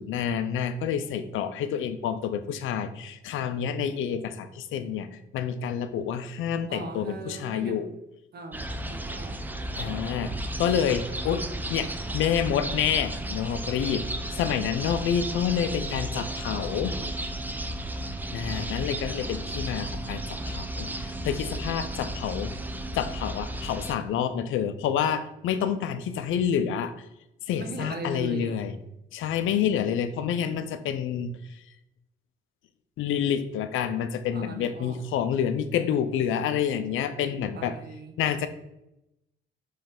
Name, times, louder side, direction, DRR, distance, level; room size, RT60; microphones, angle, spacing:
voice 1, 0.0-5.1 5.3-7.9 9.8-10.3 10.6-14.0 14.3-16.9 18.3-22.5 22.9-26.9 27.5-28.8 29.1-31.3 33.0-37.7 38.2-38.5, left 8 dB, 80° left, 11 dB, 0.6 m, -28 dB
voice 2, 6.7-7.9 8.3-9.5 16.1-17.2 27.5-28.6 34.3-35.0 37.2-38.1, right 2 dB, 55° right, 6 dB, 1.1 m, -40 dB
sound 1, 8.5-23.9, right 1 dB, 10° right, 0.6 m, -33 dB
5.6 x 3.3 x 5.2 m, 0.86 s
cardioid pair, 90°, 20 cm